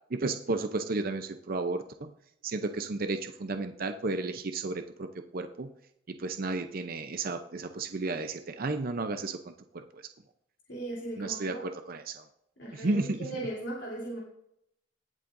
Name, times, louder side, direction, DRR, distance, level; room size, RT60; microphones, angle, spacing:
voice 1, 0.1-2.1 2.4-5.1 5.3-5.7 6.2-9.5 9.9-10.0 11.2-12.2 12.7-13.3, right 3 dB, 55° right, 7 dB, 0.6 m, -33 dB
voice 2, 10.7-11.7 12.6-14.2, right 1 dB, 90° left, -4 dB, 3.3 m, -37 dB
18.5 x 7.4 x 2.6 m, 0.76 s
head